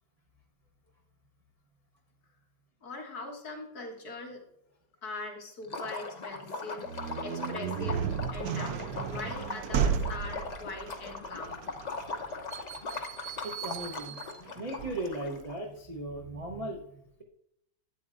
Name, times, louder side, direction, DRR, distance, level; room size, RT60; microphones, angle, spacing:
voice 1, 2.8-4.4 5.0-6.9 7.2-8.0 8.3-11.6, left 3 dB, 65° left, 0 dB, 2.0 m, -41 dB
Liquid, 5.6-15.6, left 3 dB, 50° left, 0.5 m, -40 dB
sound 1, 6.8-15.5, right 7 dB, 70° right, 1.0 m, -35 dB
voice 2, 13.4-14.2 14.6-17.2, right 1 dB, 35° right, 0 dB, 0.5 m, -37 dB
11.5 x 8.6 x 2.5 m, 0.79 s
omnidirectional pair, 1.8 m